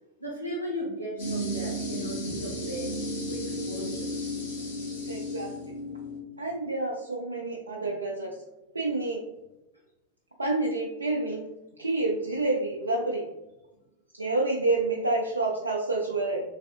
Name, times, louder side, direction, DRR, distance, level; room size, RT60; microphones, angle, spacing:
voice 1, 0.2-2.9 3.3-4.4, equal, 90° left, -6 dB, 0.7 m, -36 dB
sound 1, 1.2-6.2, equal, 60° left, 1.3 m, -33 dB
voice 2, 5.1-5.5 6.4-8.3 8.7-9.2 10.4-11.4 11.8-13.2 14.1-16.4, right 2 dB, 80° right, -2 dB, 0.4 m, -28 dB
3.4 x 3.3 x 2.4 m, 1.0 s
figure-of-eight pair, 90°, 0 cm